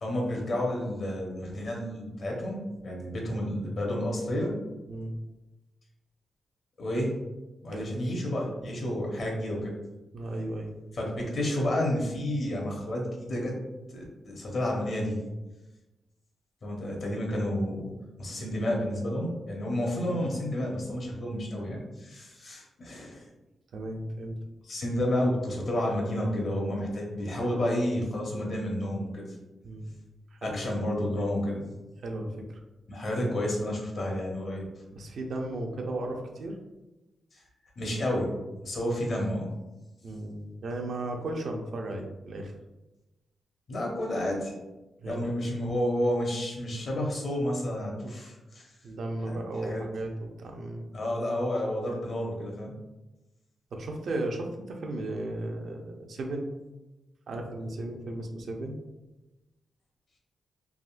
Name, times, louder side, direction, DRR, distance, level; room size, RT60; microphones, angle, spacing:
voice 1, 0.0-4.5 6.8-7.2 7.6-9.7 10.9-13.5 13.9-15.2 16.6-17.9 18.2-23.3 24.6-29.2 30.4-31.6 32.9-34.7 37.8-38.3 38.6-39.5 43.7-44.5 45.0-48.7 49.2-49.8 50.9-52.7, left 1 dB, 55° left, -1 dB, 0.9 m, -30 dB
voice 2, 10.1-10.7 23.7-24.4 29.6-29.9 30.3-30.6 32.0-32.6 34.9-36.6 40.0-42.5 45.0-45.3 48.8-50.9 53.7-56.5 57.3-58.8, right 2 dB, 65° right, 2 dB, 0.4 m, -35 dB
3.4 x 2.4 x 2.4 m, 1.0 s
cardioid pair, 110°, 0 cm